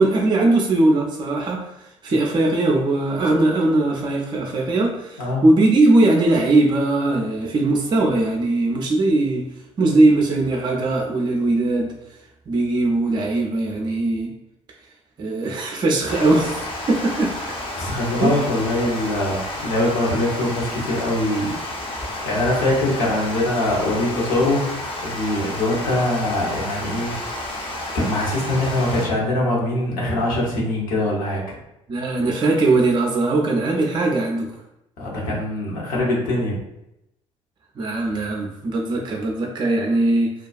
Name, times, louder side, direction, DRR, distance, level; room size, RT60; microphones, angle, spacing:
voice 1, 0.0-9.5 9.8-11.9 12.5-14.3 15.2-17.3 18.2-18.5 31.9-34.5 37.8-40.3, right 2 dB, 25° right, -1 dB, 0.4 m, -20 dB
Water, 16.1-29.1, left 1 dB, 35° left, 0.7 m, -31 dB
voice 2, 17.7-21.5 22.0-24.7 25.0-27.2 27.6-31.6 35.0-36.6, left 1 dB, 60° left, -4 dB, 0.9 m, -23 dB
2.3 x 2.2 x 2.4 m, 0.84 s
figure-of-eight pair, 50°, 17 cm